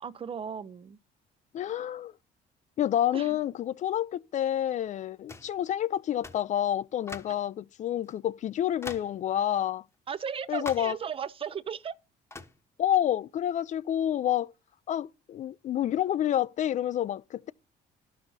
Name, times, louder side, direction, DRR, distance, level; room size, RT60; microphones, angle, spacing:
voice 1, 0.0-1.0 3.1-3.4 10.1-12.0, right 7 dB, 35° right, 0.5 m, -36 dB
voice 2, 1.5-2.1 2.8-9.8 10.5-10.9 12.8-14.5 14.9-17.5, left 11 dB, 45° left, 0.4 m, -29 dB
sound 1, 5.3-5.6 6.2-6.5 7.1-7.4 8.1-8.2 8.8-9.2 10.7-11.0 12.3-12.6, left 3 dB, 15° left, 1.0 m, -42 dB
11.5 x 6.1 x 4.1 m
cardioid pair, 110°, 17 cm